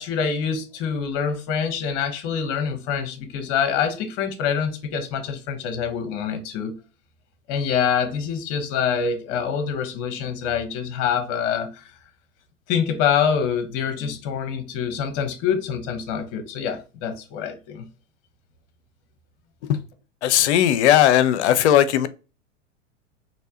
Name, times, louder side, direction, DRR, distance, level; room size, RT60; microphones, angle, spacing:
voice 1, 0.0-6.7 7.5-11.8 12.7-17.9, left 7 dB, 40° left, 0.9 m, -25 dB
voice 2, 20.2-22.1, left 11 dB, 60° left, 0.6 m, -17 dB
3.3 x 2.7 x 2.7 m
figure-of-eight pair, 95°, 38 cm